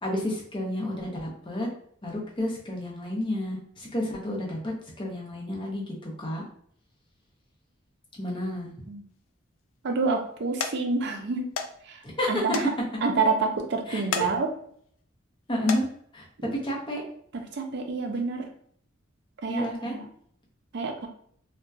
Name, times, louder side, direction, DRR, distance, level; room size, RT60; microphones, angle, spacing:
voice 1, 0.0-1.7 2.0-6.4 8.2-8.7 12.2-12.4 13.9-14.0 15.5-15.9 16.1-16.2 16.6-17.0 19.5-20.0, left 1 dB, 25° left, -3 dB, 0.7 m, -30 dB
sound 1, 9.2-9.6 10.1-10.3 10.6-10.8 11.6-11.7 12.0-12.1 12.5-12.7 13.1-13.2 14.0-14.3 14.8-15.0 15.5-15.8 16.8-16.9 17.4-17.5, left 6 dB, 90° left, 0.3 m, -31 dB
voice 2, 9.8-11.5 11.8-12.0 12.3-12.7 13.0-14.5 16.4-16.5 17.3-18.5 19.4-20.1 20.7-21.1, right 4 dB, 60° right, 4 dB, 0.5 m, -28 dB
2.7 x 2.2 x 2.3 m, 0.63 s
head